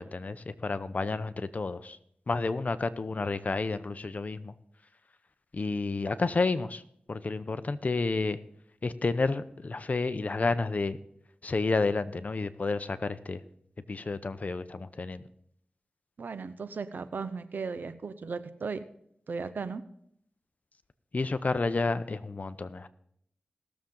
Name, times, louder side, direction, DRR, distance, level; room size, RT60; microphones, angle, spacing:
voice 1, 0.0-2.0 2.3-4.5 5.5-6.8 7.1-8.4 8.8-11.0 11.4-13.4 13.9-15.2 21.1-22.9, left 3 dB, 55° left, 13 dB, 0.7 m, -30 dB
voice 2, 16.2-18.8 19.3-19.8, right 4 dB, 80° right, 12 dB, 0.8 m, -36 dB
18.5 x 7.2 x 3.9 m, 0.70 s
cardioid pair, 55°, 3 cm